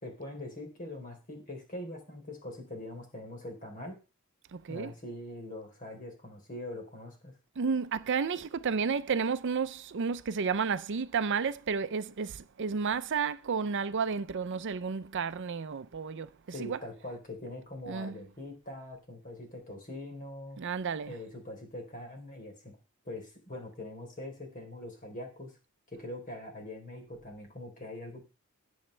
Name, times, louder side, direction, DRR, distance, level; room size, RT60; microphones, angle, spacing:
voice 1, 0.0-4.0 4.7-7.3 16.5-20.6 21.1-22.8 23.0-25.5 25.9-28.2, left 1 dB, 40° left, 3.7 m, -43 dB
voice 2, 4.5-4.9 7.6-16.3 16.6-16.8 17.9-18.2 20.6-21.2, right 5 dB, 55° right, 0.5 m, -32 dB
18.5 x 7.2 x 3.3 m
head